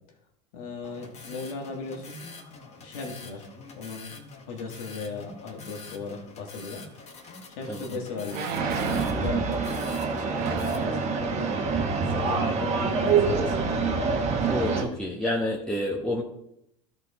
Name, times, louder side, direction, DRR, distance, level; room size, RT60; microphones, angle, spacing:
voice 1, 0.5-2.3 2.8-3.5 3.8-4.1 4.5-6.8 7.6-9.5 10.1-11.6 12.1-13.7, left 4 dB, 85° left, 2 dB, 1.9 m, -37 dB
sound 1, 0.8-10.8, left 4 dB, 40° left, 1.6 m, -45 dB
sound 2, 7.2-7.3 8.3-9.3 10.3-10.8 11.8-11.9 12.2-12.6 13.1-13.2, right 6 dB, 60° right, 1.0 m, -34 dB
sound 3, 8.6-14.8, right 5 dB, 40° right, 1.4 m, -26 dB
voice 2, 14.5-16.2, left 1 dB, 5° left, -3 dB, 1.2 m, -28 dB
13.0 x 4.5 x 4.2 m, 0.79 s
supercardioid pair, 105°, 17 cm